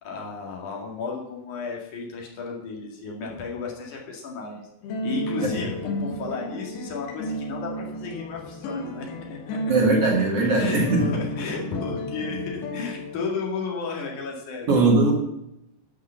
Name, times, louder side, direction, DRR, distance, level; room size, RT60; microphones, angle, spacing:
voice 1, 0.0-4.7 5.0-9.7 10.5-14.9, left 4 dB, 50° left, -1 dB, 2.9 m, -33 dB
sound 1, 4.8-13.2, equal, 75° left, 3.8 m, -32 dB
voice 2, 9.7-11.0 14.7-15.1, right 3 dB, 45° right, -1 dB, 2.1 m, -20 dB
12.5 x 5.5 x 7.0 m, 0.85 s
omnidirectional pair, 5.6 m